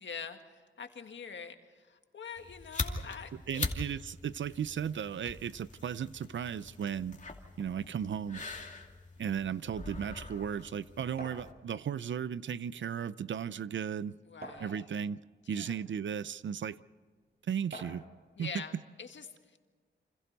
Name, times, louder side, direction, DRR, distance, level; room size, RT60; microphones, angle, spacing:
voice 1, 0.0-3.7 14.3-14.8 15.5-15.8 18.4-19.6, left 6 dB, 70° left, 1.9 m, -45 dB
sound 1, 2.4-11.5, left 3 dB, 40° left, 2.6 m, -42 dB
voice 2, 3.5-7.2 7.6-8.4 9.2-14.2 14.6-15.2 15.5-16.8 17.5-18.0 18.4-18.6, right 8 dB, 70° right, 0.6 m, -35 dB
sound 2, 11.2-11.5 12.6-12.7 13.1-13.2 14.4-15.1 15.9-16.0 17.7-18.1, right 1 dB, 50° right, 6.4 m, -45 dB
28.5 x 26.0 x 4.1 m
cardioid pair, 70°, 20 cm